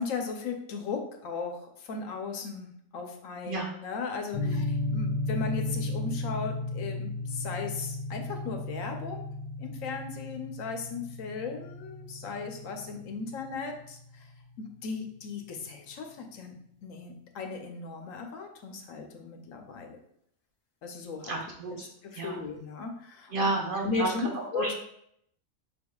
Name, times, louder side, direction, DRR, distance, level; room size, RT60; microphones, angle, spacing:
voice 1, 0.0-9.2 9.6-14.3 14.6-16.5 16.8-20.0 20.8-21.3 21.7-23.5 23.8-24.7, left 4 dB, 80° left, 4 dB, 1.1 m, -36 dB
sound 1, 4.3-14.5, left 2 dB, 40° left, 0.5 m, -35 dB
voice 2, 21.2-21.9 22.1-22.4 23.3-24.1 24.3-24.7, right 2 dB, 45° right, 0 dB, 1.0 m, -31 dB
5.3 x 3.5 x 2.3 m, 0.72 s
omnidirectional pair, 1.4 m